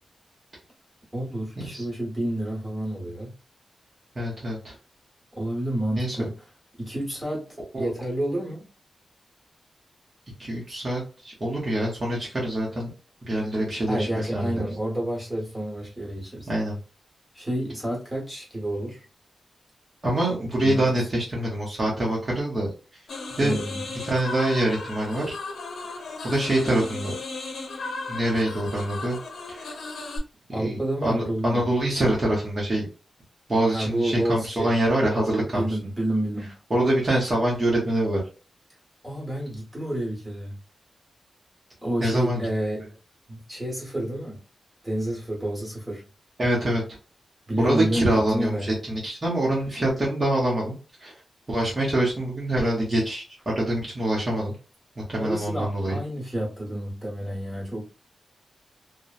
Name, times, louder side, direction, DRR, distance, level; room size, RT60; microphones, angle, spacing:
voice 1, 1.1-3.3 5.3-6.3 6.8-8.7 13.9-16.5 17.3-19.0 20.6-20.9 23.4-23.8 30.5-31.6 33.6-34.7 35.5-36.5 39.0-40.6 41.8-42.9 43.3-44.4 44.8-46.0 47.5-48.7 55.2-57.8, right 1 dB, 10° right, 1.2 m, -29 dB
voice 2, 4.1-4.7 6.0-6.3 7.7-7.9 10.4-12.9 13.2-14.6 16.5-16.8 20.0-22.7 23.3-23.6 24.0-25.3 26.2-27.1 28.1-29.2 29.5-29.7 30.5-32.9 33.5-35.7 36.7-38.2 42.0-42.5 46.4-46.8 47.6-48.6 48.9-50.7 51.0-51.2 51.5-54.5 55.1-56.0, right 1 dB, 25° right, 0.8 m, -25 dB
sound 1, 23.1-30.2, left 3 dB, 75° left, 0.6 m, -35 dB
2.9 x 2.1 x 2.4 m
wide cardioid pair, 180°, 0 cm